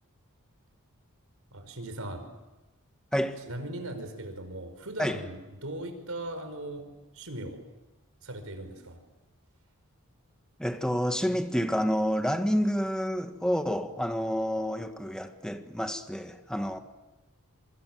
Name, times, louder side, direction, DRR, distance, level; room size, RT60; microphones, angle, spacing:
voice 1, 1.5-2.2 3.4-7.6 8.2-9.0, right 1 dB, 80° right, 5.1 m, -39 dB
voice 2, 10.6-16.8, equal, 5° left, 1.6 m, -29 dB
27.5 x 25.0 x 7.7 m
head